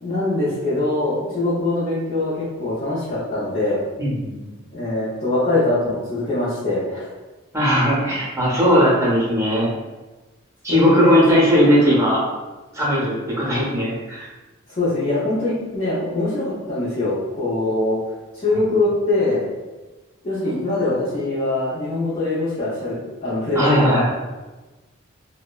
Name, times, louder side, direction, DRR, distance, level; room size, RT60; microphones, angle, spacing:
voice 1, 0.0-3.8 4.7-7.1 10.7-11.2 14.7-18.0 18.3-19.5 20.2-24.1, left 2 dB, 35° left, -11 dB, 0.6 m, -23 dB
voice 2, 4.0-4.5 7.5-9.7 10.6-12.2 12.7-14.3 23.5-24.1, equal, 15° right, -7 dB, 0.6 m, -18 dB
2.7 x 2.1 x 2.3 m, 1.2 s
head